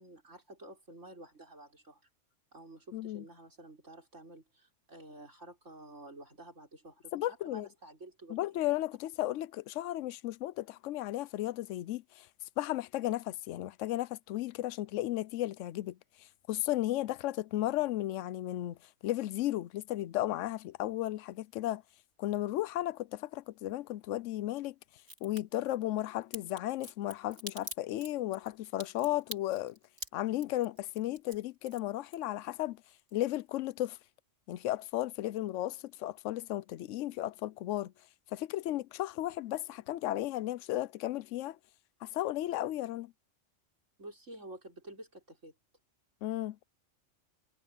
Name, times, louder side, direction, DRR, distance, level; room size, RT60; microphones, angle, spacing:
voice 1, 0.0-2.0 2.5-8.6 44.0-45.5, right 1 dB, 80° right, 6.4 m, -51 dB
voice 2, 2.9-3.2 7.1-7.7 8.3-12.3 12.6-18.8 19.0-21.8 22.2-24.7 25.2-29.8 30.1-32.8 33.1-34.0 34.5-37.9 38.3-41.6 42.0-43.1 46.2-46.6, left 14 dB, 80° left, 0.9 m, -34 dB
Crack, 25.0-25.4 26.3-32.6 32.9-33.6 33.8-33.9, right 2 dB, 60° right, 4.3 m, -45 dB
omnidirectional pair, 1.2 m